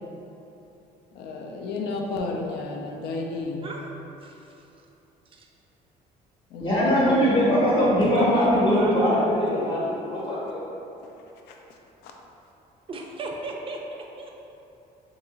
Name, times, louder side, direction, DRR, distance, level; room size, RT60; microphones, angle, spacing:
voice 1, 1.1-3.7 6.5-7.5 12.0-12.1, left 3 dB, 80° left, 1 dB, 0.5 m, -32 dB
voice 2, 4.2-4.7 5.3-5.5 7.7-8.9 12.9-14.3, right 2 dB, 30° right, 0 dB, 0.4 m, -36 dB
voice 3, 6.6-10.6, equal, 25° left, -8 dB, 0.8 m, -21 dB
2.9 x 2.3 x 3.8 m, 2.9 s
cardioid pair, 110°, 17 cm